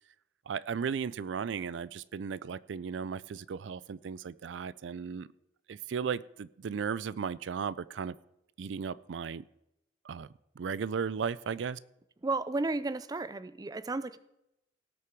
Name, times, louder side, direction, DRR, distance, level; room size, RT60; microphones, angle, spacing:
voice 1, 0.5-5.3 5.7-8.1 8.6-9.4 10.0-10.3 10.6-11.8, right 6 dB, 80° right, 19 dB, 0.4 m, -35 dB
voice 2, 12.2-14.2, right 3 dB, 20° right, 15 dB, 0.4 m, -33 dB
17.5 x 6.7 x 4.6 m, 0.84 s
head